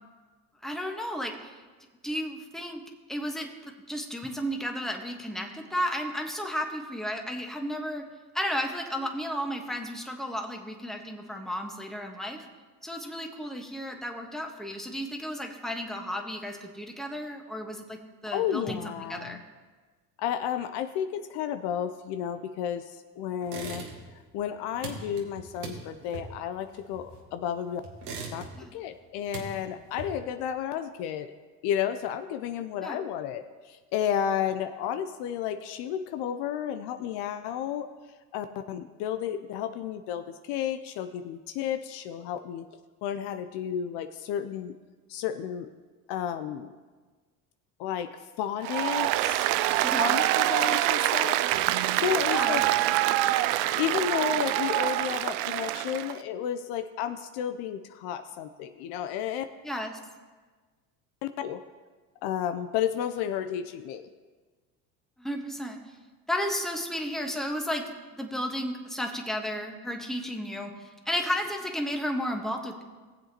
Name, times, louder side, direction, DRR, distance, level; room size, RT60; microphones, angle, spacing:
voice 1, 0.6-1.5 2.0-2.8 3.1-8.0 8.3-12.5 12.8-19.4 28.6-28.7 32.8-33.0 49.8-50.2 52.3-52.7 59.6-60.0 65.2-65.8 66.3-67.9 68.2-72.8, equal, ahead, 3 dB, 1.3 m, -33 dB
voice 2, 18.3-19.4 20.2-23.8 24.3-27.8 28.3-28.5 28.7-31.3 31.6-37.9 38.3-42.6 43.0-44.7 45.1-45.7 46.1-46.7 47.8-49.5 50.0-51.4 51.9-52.6 53.7-59.4 61.2-61.6 62.2-64.0, left 9 dB, 60° left, 9 dB, 0.7 m, -32 dB
sound 1, 23.4-24.2 24.5-27.4 27.8-28.8 29.1-30.4, right 4 dB, 85° right, 1.9 m, -40 dB
Applause, 48.6-56.2, right 15 dB, 60° right, 0.6 m, -25 dB
18.5 x 7.7 x 3.0 m, 1.4 s
hypercardioid pair, 75°, 46 cm